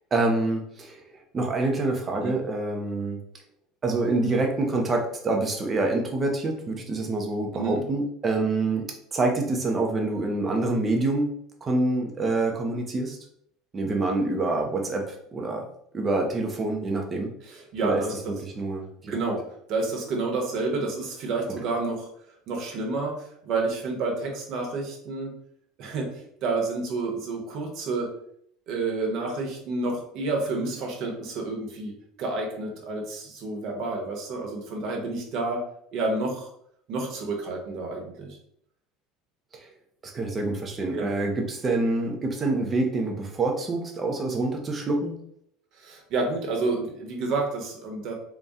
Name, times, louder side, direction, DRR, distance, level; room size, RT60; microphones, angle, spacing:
voice 1, 0.1-3.2 3.8-11.3 11.6-13.2 13.7-15.7 15.9-17.3 17.8-18.0 18.4-19.1 39.5-39.7 40.0-45.2, right 2 dB, 20° right, 2 dB, 0.6 m, -26 dB
voice 2, 17.5-18.1 19.0-19.4 19.7-22.1 22.5-25.3 25.8-28.1 28.7-35.6 35.9-36.5 36.9-38.4 40.9-41.1 45.8-48.1, right 3 dB, 45° right, 1 dB, 1.0 m, -29 dB
4.0 x 2.2 x 3.6 m, 0.69 s
cardioid pair, 170°, 0 cm